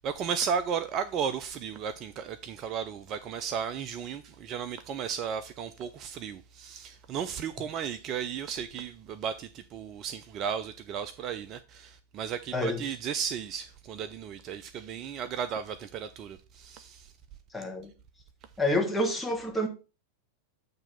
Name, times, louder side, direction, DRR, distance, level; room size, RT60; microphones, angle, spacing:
voice 1, 0.0-17.1, right 7 dB, 35° right, 0.4 m, -34 dB
voice 2, 12.5-12.8 17.5-17.9 18.6-19.7, left 1 dB, 5° left, 1.3 m, -28 dB
8.8 x 3.0 x 5.6 m
figure-of-eight pair, 90°, 0 cm